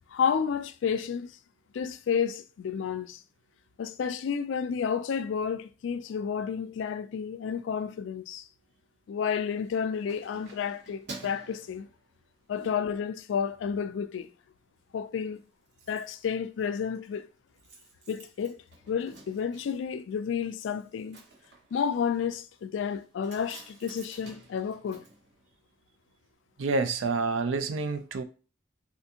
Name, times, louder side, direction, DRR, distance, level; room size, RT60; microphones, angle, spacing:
voice 1, 0.1-1.4 1.7-3.2 3.8-8.5 9.1-11.9 12.5-14.3 14.9-15.4 15.9-17.3 18.1-18.6 18.9-21.2 21.7-25.0, left 7 dB, 75° left, 0.3 m, -31 dB
Keys jangling, 9.5-12.6 13.0-13.2 13.6-14.3 14.6-14.7 14.9-15.0 15.2-26.0 26.3-26.4, right 3 dB, 60° right, 0.9 m, -51 dB
voice 2, 26.6-28.2, right 4 dB, 85° right, 0.4 m, -28 dB
3.5 x 2.5 x 2.8 m
head